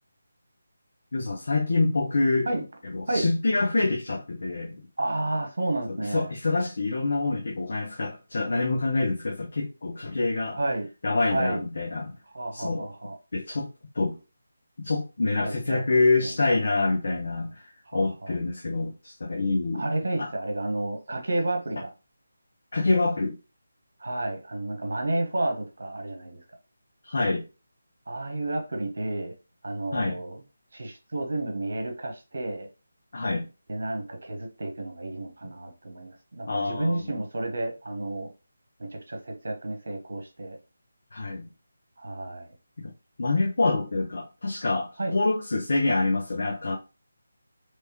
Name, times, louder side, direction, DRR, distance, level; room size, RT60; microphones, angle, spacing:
voice 1, 1.1-4.8 5.9-10.6 11.0-12.1 12.5-12.9 13.3-13.7 13.9-14.2 14.8-19.8 20.2-20.3 22.7-23.4 27.0-27.4 29.9-30.2 33.1-33.5 36.5-37.2 41.1-41.5 42.8-42.9 43.2-46.8, left 3 dB, 55° left, 0.9 m, -26 dB
voice 2, 5.0-6.3 10.5-10.9 11.3-11.6 12.3-13.1 15.4-15.8 16.2-16.4 17.9-18.3 19.7-21.9 24.0-26.4 28.1-29.3 29.6-30.4 30.7-32.7 33.7-38.3 38.8-40.6 42.0-42.5 45.0-45.2, right 2 dB, 65° right, 1.1 m, -31 dB
3.4 x 3.2 x 2.9 m
figure-of-eight pair, 155°, 0 cm